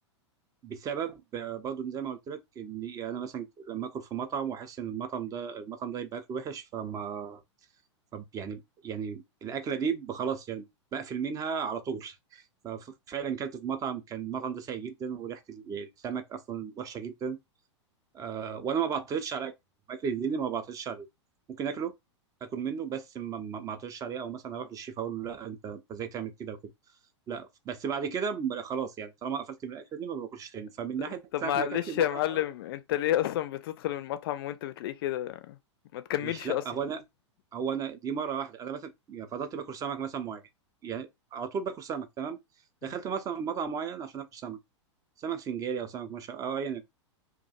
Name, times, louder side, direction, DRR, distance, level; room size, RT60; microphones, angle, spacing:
voice 1, 0.6-7.4 8.1-10.7 10.9-17.4 18.1-19.5 19.9-21.1 21.5-21.9 22.4-26.6 27.3-32.4 36.2-37.0 37.5-40.4 40.8-42.4 42.8-44.6 45.2-46.8, right 7 dB, 20° right, 0.4 m, -35 dB
voice 2, 31.3-35.6 35.9-36.6 42.8-42.9, left 13 dB, 50° left, 0.4 m, -30 dB
2.4 x 2.2 x 2.7 m
figure-of-eight pair, 100°, 15 cm